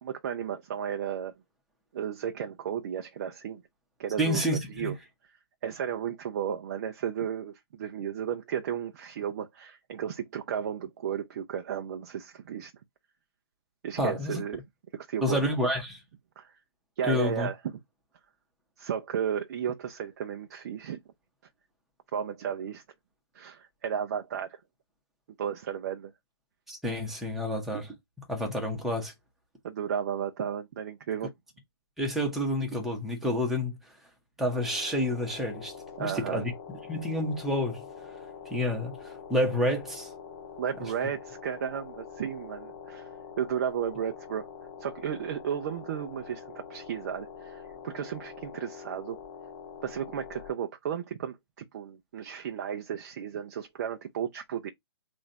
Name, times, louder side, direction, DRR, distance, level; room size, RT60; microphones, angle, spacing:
voice 1, 0.0-1.3 1.9-3.6 4.0-4.4 4.7-4.9 5.6-12.7 13.8-14.6 14.9-15.4 16.4-16.6 17.0-17.6 18.8-21.0 22.1-22.8 23.3-24.6 25.4-26.1 29.6-31.3 36.0-36.4 40.6-43.1 43.4-44.5 44.8-49.2 49.8-54.7, right 8 dB, 40° right, 0.5 m, -34 dB
voice 2, 4.2-4.9 14.0-14.4 15.2-16.0 17.0-17.5 26.7-27.9 28.3-29.1 32.0-33.8 34.4-35.7 36.0-36.5 36.9-37.8 38.4-40.1, left 1 dB, ahead, 1.2 m, -29 dB
sound 1, 34.5-50.5, left 6 dB, 35° left, 1.4 m, -45 dB
3.9 x 2.5 x 4.0 m
figure-of-eight pair, 135°, 14 cm